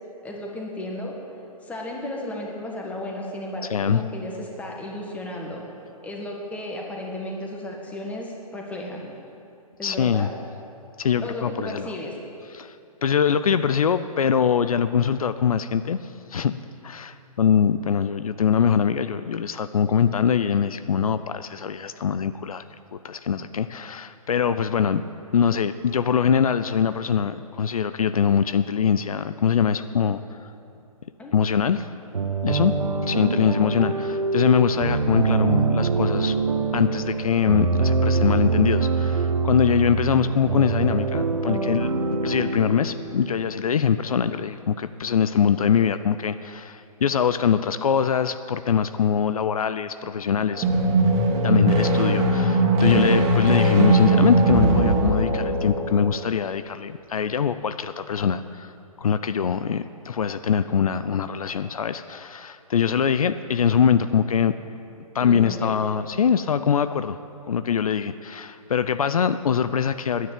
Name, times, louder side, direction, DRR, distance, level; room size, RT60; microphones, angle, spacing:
voice 1, 0.2-1.2 1.6-5.7 6.0-9.2 9.8-10.4 11.2-12.2 31.2-31.3 65.2-65.8, left 1 dB, 5° left, -1 dB, 1.8 m, -34 dB
voice 2, 3.7-4.0 9.8-10.3 11.0-11.9 12.6-12.7 13.0-16.0 16.3-16.5 16.8-22.6 22.9-25.0 25.3-30.2 31.3-31.9 32.4-36.4 36.7-41.9 42.2-50.6 51.4-58.7 59.0-64.5 65.1-67.2 67.5-70.3, left 7 dB, 70° left, 12 dB, 0.5 m, -23 dB
sound 1, 32.1-43.9, right 4 dB, 80° right, 1.2 m, -24 dB
sound 2, 50.5-56.2, right 2 dB, 25° right, 2.3 m, -20 dB
10.0 x 9.5 x 9.0 m, 2.7 s
figure-of-eight pair, 130°, 19 cm